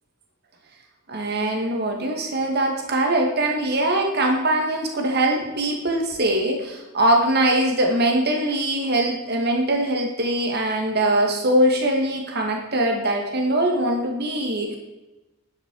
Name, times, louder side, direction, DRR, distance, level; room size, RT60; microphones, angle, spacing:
voice 1, 1.1-14.8, right 1 dB, 50° right, 2 dB, 2.1 m, -22 dB
11.5 x 9.8 x 4.8 m, 1.0 s
head